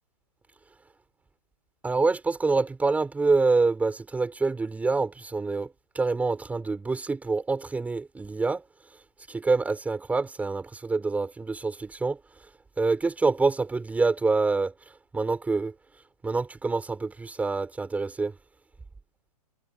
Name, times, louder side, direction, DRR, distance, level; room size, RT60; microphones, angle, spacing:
voice 1, 1.8-5.7 5.9-8.6 9.3-12.2 12.8-14.7 15.1-15.7 16.2-18.3, right 3 dB, 5° right, 6.6 m, -26 dB
hypercardioid pair, 145°, 21 cm